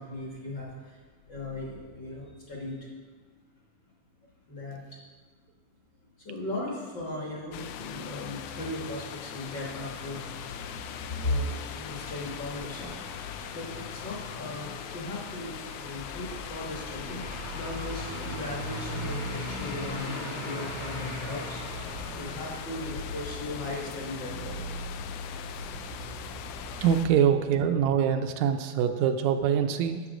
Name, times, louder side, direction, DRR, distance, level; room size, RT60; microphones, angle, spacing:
voice 1, 0.0-2.9 4.5-5.0 6.2-13.1 13.5-24.6, left 1 dB, 50° left, -3 dB, 1.5 m, -37 dB
sound 1, 7.5-27.1, left 9 dB, 90° left, 1.4 m, -41 dB
Truck / Idling, 9.4-27.1, left 1 dB, 65° left, 3.8 m, -40 dB
voice 2, 26.8-30.0, right 8 dB, 80° right, 7 dB, 1.8 m, -24 dB
10.0 x 6.9 x 5.0 m, 1.4 s
omnidirectional pair, 3.4 m